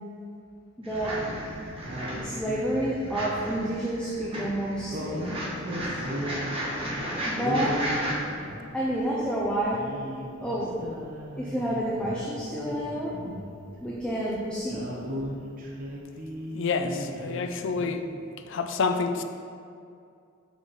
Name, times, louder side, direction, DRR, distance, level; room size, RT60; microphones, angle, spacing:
voice 1, 0.8-1.2 2.2-5.3 7.2-7.8 8.7-9.8 10.0-10.7 11.3-13.1 13.8-14.8, right 1 dB, 5° left, -6 dB, 0.7 m, -29 dB
sound 1, 0.8-8.1, equal, 30° right, 1.6 m, -34 dB
sound 2, 1.0-1.5 1.8-3.6 4.9-6.8 7.3-9.1 9.6-12.3 12.6-13.8 14.1-14.2 14.6-17.5 17.7-18.0, equal, 45° right, 0.9 m, -37 dB
voice 2, 16.5-18.1 18.5-19.2, left 4 dB, 65° left, 8 dB, 0.5 m, -28 dB
5.6 x 5.3 x 4.8 m, 2.4 s
head